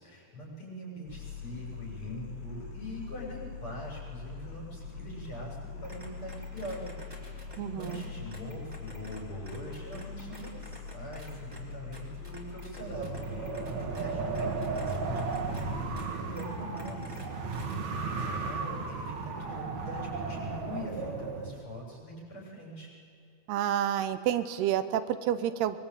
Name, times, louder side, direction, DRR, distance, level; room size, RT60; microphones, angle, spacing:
voice 1, 0.0-17.5 17.8-22.9, equal, 30° left, -3 dB, 8.0 m, -43 dB
sound 1, 1.1-16.1, left 5 dB, 55° left, 5.1 m, -43 dB
sound 2, 5.8-9.2 9.5-11.6 11.9-14.0 14.3-15.6 16.0-16.1 16.4-16.5 16.8-17.3 17.5-17.8, right 1 dB, 5° right, 3.9 m, -48 dB
voice 2, 7.6-8.0 23.5-25.8, right 11 dB, 85° right, 11 dB, 3.0 m, -29 dB
Wind, 12.8-21.5, right 4 dB, 50° right, 3.0 m, -35 dB
24.0 x 22.5 x 9.2 m, 2.5 s
omnidirectional pair, 4.5 m